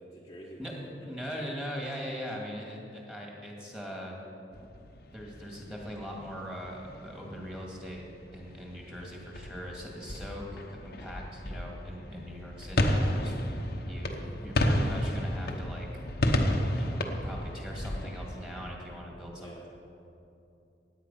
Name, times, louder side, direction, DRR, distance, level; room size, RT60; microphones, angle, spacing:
voice 1, 0.0-1.1 19.4-19.7, right 1 dB, 20° left, -4 dB, 1.2 m, -48 dB
voice 2, 1.1-4.2 5.1-8.0 8.3-13.4 13.9-14.1 14.4-15.9 16.8-19.7, equal, 5° right, -2 dB, 2.1 m, -41 dB
sound 1, 4.5-18.7, left 1 dB, 60° left, 1.0 m, -32 dB
16.5 x 9.4 x 5.6 m, 2.7 s
head